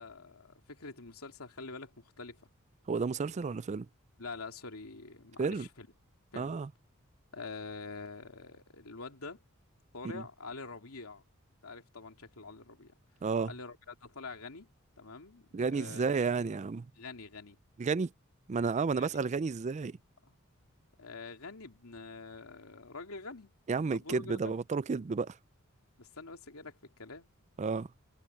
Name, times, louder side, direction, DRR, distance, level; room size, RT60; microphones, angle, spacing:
voice 1, 0.0-2.4 4.2-5.9 6.3-6.6 7.3-9.4 9.9-11.2 11.6-12.9 13.4-14.7 15.0-16.1 17.0-17.6 18.9-19.2 20.2-20.3 21.0-23.5 23.9-24.6 26.0-27.3, left 3 dB, 90° left, 2.8 m, -46 dB
voice 2, 2.9-3.9 5.4-5.7 6.4-6.7 10.1-10.2 13.2-13.5 15.5-16.9 17.8-18.1 18.5-20.0 23.7-25.4 27.6-27.9, right 4 dB, 35° right, 0.4 m, -31 dB
head